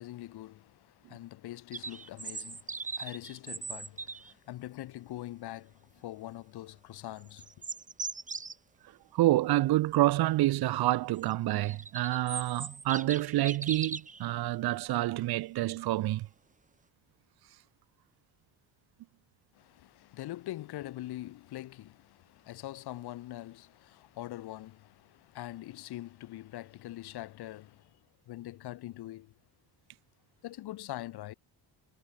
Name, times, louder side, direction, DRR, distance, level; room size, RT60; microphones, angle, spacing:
voice 1, 0.0-7.5 19.5-27.9 28.3-29.3 30.4-31.3, left 15 dB, 70° left, 2.3 m, -43 dB
sound 1, 1.7-4.3 7.2-8.6 11.3-14.2, right 4 dB, 20° right, 2.6 m, -39 dB
voice 2, 9.1-16.3, right 16 dB, 65° right, 1.0 m, -28 dB
cardioid pair, 150°, 40 cm